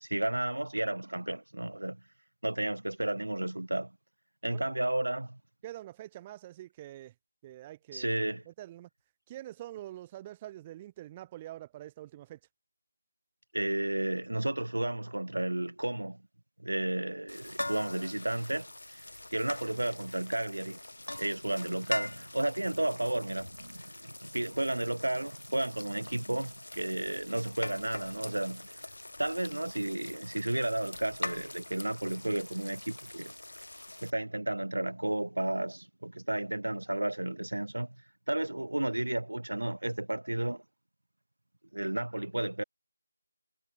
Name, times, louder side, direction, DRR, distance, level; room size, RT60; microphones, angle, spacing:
voice 1, 0.0-2.0 2.4-3.9 4.4-5.4 7.9-8.4 13.5-16.2 16.6-18.7 19.0-19.1 19.3-20.8 21.2-28.7 29.2-33.3 34.0-38.0 38.3-40.6 41.7-42.6, right 1 dB, 85° right, 1.5 m, -32 dB
voice 2, 5.6-7.1 7.4-8.1 8.5-8.9 9.3-12.4, right 14 dB, 10° right, 1.1 m, -45 dB
sound 1, 17.3-34.1, left 1 dB, 80° left, 3.2 m, -43 dB
figure-of-eight pair, 170°, 0 cm